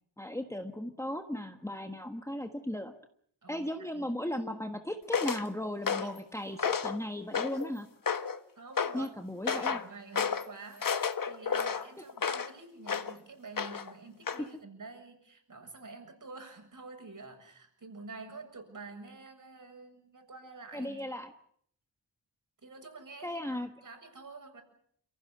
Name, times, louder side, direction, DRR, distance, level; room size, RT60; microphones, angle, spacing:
voice 1, 0.2-2.9 3.5-7.9 8.9-9.8 20.7-21.3 23.2-23.7, left 1 dB, 5° left, 6 dB, 1.5 m, -36 dB
voice 2, 3.4-4.6 6.0-6.1 8.6-9.2 9.5-10.9 11.3-21.0 22.6-24.6, right 3 dB, 45° right, 5 dB, 7.2 m, -48 dB
sound 1, 5.1-5.4 5.9-6.2 6.6-7.0 7.3-7.7 8.1-8.4 8.8-9.0 9.5-9.8 10.1-10.5 10.8-12.5 12.9-13.1 13.6-13.9 14.3-14.4, left 6 dB, 50° left, 1.6 m, -31 dB
29.0 x 16.0 x 9.8 m, 0.66 s
wide cardioid pair, 175°, 43 cm